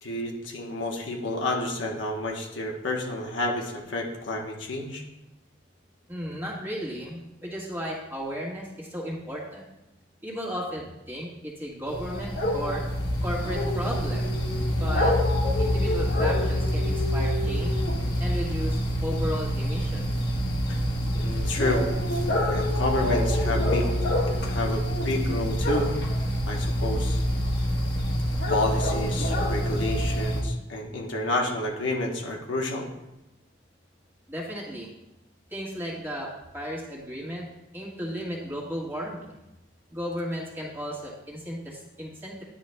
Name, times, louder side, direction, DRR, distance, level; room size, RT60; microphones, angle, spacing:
voice 1, 0.0-5.0 20.7-20.8 21.1-21.9 22.5-23.9 24.3-25.9 26.5-27.2 28.5-32.9, left 1 dB, 80° left, 0 dB, 1.1 m, -30 dB
voice 2, 6.1-9.7 10.2-12.8 13.2-14.3 14.7-15.2 15.6-17.8 18.2-20.1 34.3-34.9 35.5-37.5 37.7-39.4 39.9-42.4, equal, 10° right, -5 dB, 1.5 m, -34 dB
sound 1, 11.8-30.4, equal, 65° left, 1.2 m, -26 dB
10.0 x 6.6 x 2.2 m, 0.93 s
head